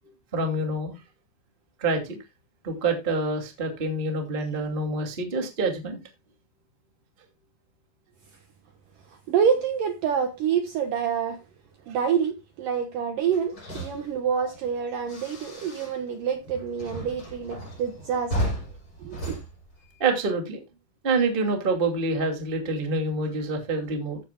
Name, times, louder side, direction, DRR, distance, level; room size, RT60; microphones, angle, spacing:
voice 1, 0.3-0.9 1.8-2.2 2.6-6.0 11.9-12.0 20.0-20.6 21.0-24.2, right 3 dB, 20° right, 1.4 m, -26 dB
voice 2, 9.1-11.4 11.9-18.5 19.0-19.4, right 7 dB, 65° right, 2.3 m, -27 dB
sound 1, 13.2-16.2 16.4-20.3, equal, 25° left, 7.7 m, -35 dB
14.0 x 9.0 x 2.3 m
omnidirectional pair, 5.0 m